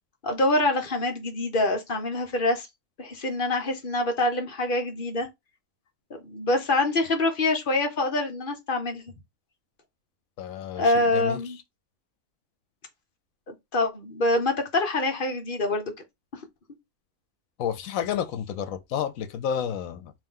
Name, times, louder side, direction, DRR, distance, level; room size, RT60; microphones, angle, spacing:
voice 1, 0.2-2.7 3.0-5.3 6.2-9.0 10.8-11.6 13.5-15.9, left 2 dB, 45° left, 1.0 m, -25 dB
voice 2, 10.4-11.4 17.6-20.1, left 8 dB, 80° left, 1.1 m, -30 dB
3.2 x 2.7 x 3.7 m
omnidirectional pair, 1.4 m